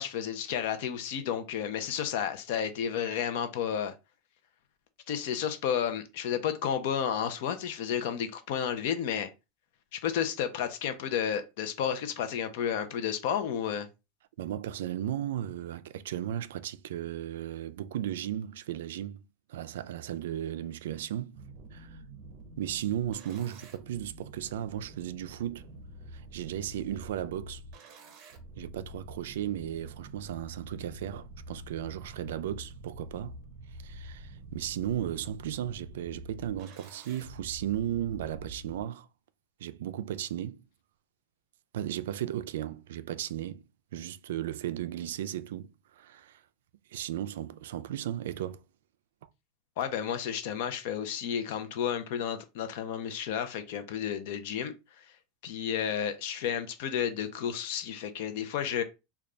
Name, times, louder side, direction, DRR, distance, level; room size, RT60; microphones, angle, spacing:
voice 1, 0.0-3.9 5.1-9.3 9.9-13.9 49.8-54.7 55.4-58.8, left 8 dB, 50° left, 0.6 m, -32 dB
voice 2, 14.4-19.2 19.5-21.4 21.7-22.0 22.6-25.6 26.1-27.6 28.6-33.4 33.8-39.1 39.6-40.6 41.7-43.6 43.9-46.4 46.9-48.6, right 11 dB, 80° right, 0.3 m, -35 dB
sound 1, 21.3-38.8, right 1 dB, 35° right, 0.6 m, -47 dB
3.3 x 2.3 x 3.7 m
supercardioid pair, 180°, 0 cm